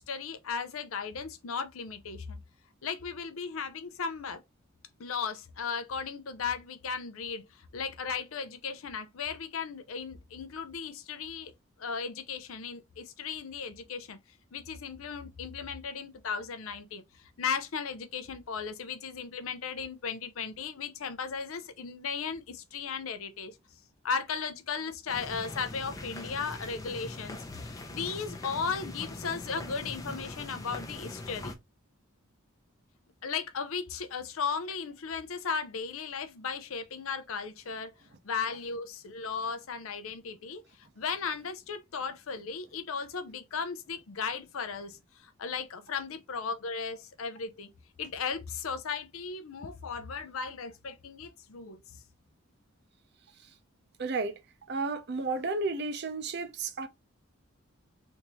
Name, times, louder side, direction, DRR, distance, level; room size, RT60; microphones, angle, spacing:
voice 1, 0.0-2.4 2.8-4.4 5.0-11.5 11.8-14.2 14.5-17.0 17.4-23.6 24.0-31.5 33.2-37.9 38.2-47.7 48.0-51.8, left 5 dB, 80° left, 0.6 m, -36 dB
sound 1, 25.1-31.5, left 2 dB, 15° left, 0.5 m, -42 dB
voice 2, 54.0-54.4 54.7-56.9, right 3 dB, 55° right, 0.6 m, -32 dB
3.5 x 2.7 x 2.9 m
head